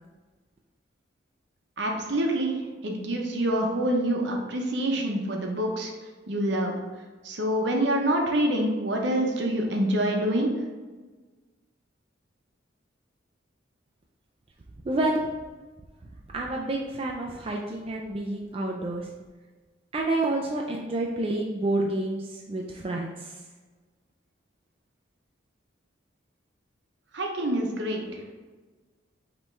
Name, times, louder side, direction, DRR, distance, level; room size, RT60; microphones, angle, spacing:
voice 1, 1.8-5.9 6.3-6.7 7.2-10.6 27.1-28.1, right 1 dB, 60° right, 1 dB, 0.8 m, -26 dB
voice 2, 14.8-15.3 16.3-19.1 19.9-23.4, right 2 dB, 30° right, -1 dB, 0.3 m, -29 dB
5.3 x 3.1 x 3.2 m, 1.3 s
head